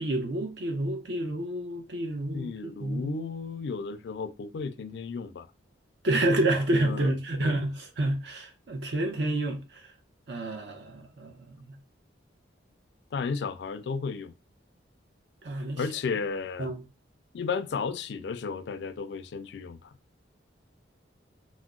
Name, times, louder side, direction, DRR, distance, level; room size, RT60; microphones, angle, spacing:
voice 1, 0.0-3.3 6.0-9.9 10.3-11.8 15.4-15.8 16.6-16.8, right 1 dB, 65° right, 0.7 m, -29 dB
voice 2, 2.3-5.5 6.8-7.1 7.4-7.6 13.1-14.3 15.8-16.7 17.3-19.9, left 5 dB, 60° left, 0.3 m, -33 dB
2.8 x 2.0 x 3.6 m
head